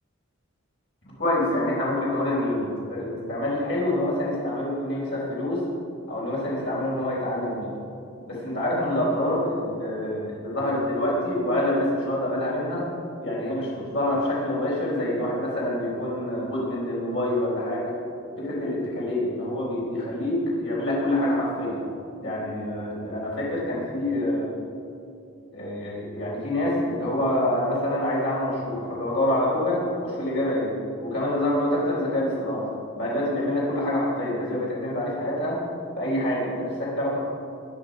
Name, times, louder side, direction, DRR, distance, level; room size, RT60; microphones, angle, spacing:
voice 1, 1.0-5.6 6.1-7.7 8.3-12.9 13.2-17.9 18.4-21.8 22.2-24.5 25.5-30.7 31.0-32.7 32.9-35.6 36.0-37.2, left 1 dB, 55° left, -6 dB, 4.1 m, -26 dB
19.5 x 10.5 x 5.1 m, 2.7 s
head